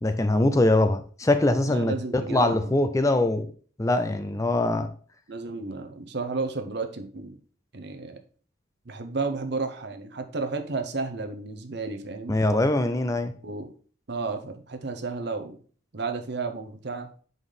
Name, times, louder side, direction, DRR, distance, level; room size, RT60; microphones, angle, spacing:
voice 1, 0.0-3.5 3.8-4.9 12.3-13.3, left 2 dB, 15° left, 9 dB, 0.4 m, -23 dB
voice 2, 1.7-2.7 5.3-7.4 7.7-8.2 8.9-12.4 13.4-13.7 14.1-15.6 15.9-17.1, right 3 dB, 55° right, 7 dB, 0.8 m, -32 dB
5.0 x 4.0 x 5.4 m, 0.42 s
head